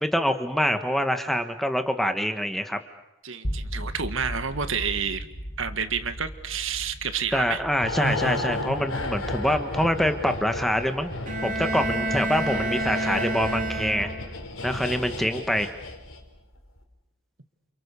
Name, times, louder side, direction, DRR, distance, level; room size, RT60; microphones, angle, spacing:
voice 1, 0.0-2.8 7.3-11.1 11.4-14.1 14.6-15.7, equal, ahead, 7 dB, 1.4 m, -25 dB
voice 2, 3.2-5.3 5.6-7.6, right 6 dB, 60° right, 9 dB, 1.7 m, -29 dB
sound 1, 3.4-13.4, equal, 35° left, 2.2 m, -39 dB
sound 2, 7.8-16.4 16.6-16.8, left 2 dB, 65° left, 4.0 m, -32 dB
Bowed string instrument, 11.3-14.5, right 2 dB, 35° right, 3.3 m, -29 dB
29.0 x 28.0 x 6.9 m, 0.89 s
head